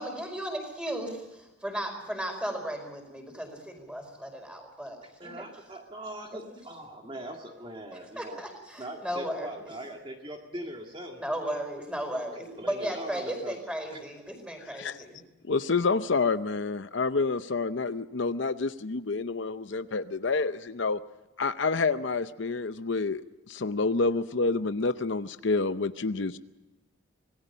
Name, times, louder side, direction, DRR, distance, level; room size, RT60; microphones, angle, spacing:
voice 1, 0.0-5.4 7.9-9.6 11.2-15.2, equal, 5° right, 4 dB, 4.9 m, -35 dB
voice 2, 5.0-8.4 8.8-11.2 12.6-13.6 13.9-14.0, right 1 dB, 25° right, 1 dB, 2.1 m, -41 dB
voice 3, 15.4-21.0 21.4-26.4, left 4 dB, 60° left, 11 dB, 0.7 m, -28 dB
26.0 x 19.5 x 5.5 m, 1.1 s
head